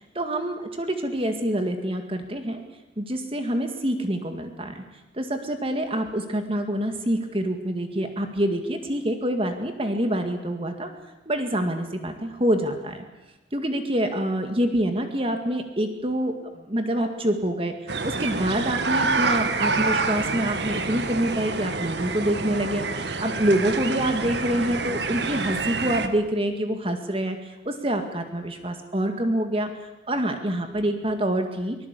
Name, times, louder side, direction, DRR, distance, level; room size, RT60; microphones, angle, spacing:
voice 1, 0.2-2.6 3.0-4.8 5.1-10.9 11.3-13.0 13.5-29.7 30.1-31.8, right 1 dB, 30° right, 6 dB, 2.0 m, -26 dB
sound 1, 17.9-26.1, right 3 dB, 70° right, 1.6 m, -27 dB
24.5 x 18.5 x 8.4 m, 1.0 s
head